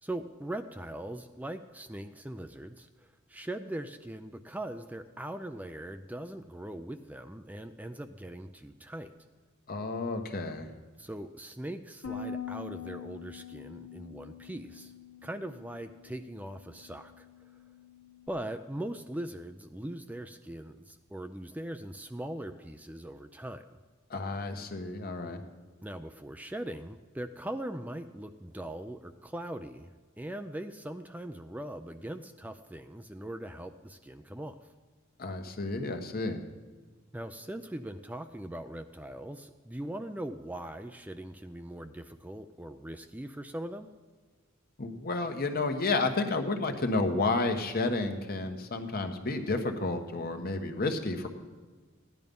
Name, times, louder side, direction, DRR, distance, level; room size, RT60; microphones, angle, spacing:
voice 1, 0.0-9.1 11.0-14.9 15.2-17.3 18.3-23.6 25.8-34.7 37.1-43.9, right 1 dB, 10° right, 7 dB, 0.4 m, -40 dB
voice 2, 9.7-10.7 24.1-25.4 35.2-36.5 44.8-51.3, left 3 dB, 50° left, 6 dB, 1.3 m, -31 dB
Bass guitar, 12.0-18.3, left 6 dB, 80° left, 1.6 m, -44 dB
15.5 x 10.5 x 5.4 m, 1.4 s
head